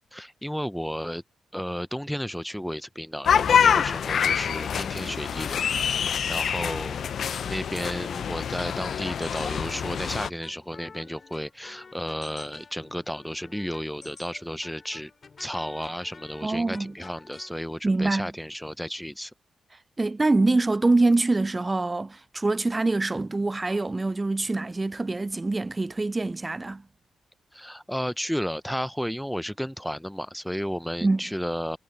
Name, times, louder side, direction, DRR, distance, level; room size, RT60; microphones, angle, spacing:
voice 1, 0.1-1.2 1.5-7.0 7.4-15.1 15.4-19.3 27.5-31.8, equal, ahead, 0.9 m, -33 dB
sound 1, 3.2-10.3, left 8 dB, 70° left, 0.6 m, -26 dB
sound 2, 9.2-17.5, left 4 dB, 50° left, 3.4 m, -50 dB
voice 2, 16.4-16.9 17.8-18.3 20.0-26.8 31.0-31.2, right 2 dB, 30° right, 0.3 m, -24 dB
hypercardioid pair, 45°, 0 cm